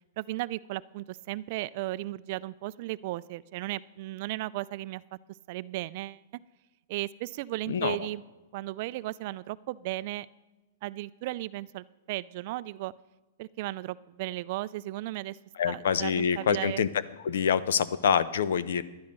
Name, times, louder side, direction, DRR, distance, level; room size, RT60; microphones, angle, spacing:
voice 1, 0.2-5.0 5.3-6.2 6.9-8.2 8.5-10.3 10.8-12.9 13.4-15.4 15.7-16.8, right 17 dB, 45° right, 18 dB, 0.3 m, -35 dB
voice 2, 15.6-16.9 17.2-18.8, left 7 dB, 75° left, 16 dB, 0.6 m, -26 dB
11.0 x 10.5 x 5.3 m, 1.1 s
hypercardioid pair, 150°, 0 cm